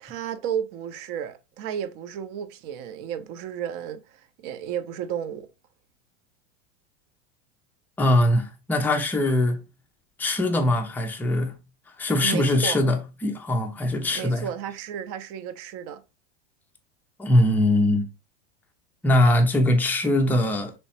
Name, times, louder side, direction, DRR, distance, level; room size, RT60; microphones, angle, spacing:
voice 1, 0.0-5.5 12.2-12.8 14.1-16.0, right 9 dB, 50° right, 0.6 m, -33 dB
voice 2, 8.0-9.6 10.2-11.5 12.0-14.5 17.2-18.1 19.0-20.7, left 1 dB, 5° left, 0.4 m, -22 dB
3.2 x 3.0 x 2.8 m
supercardioid pair, 120°, 36 cm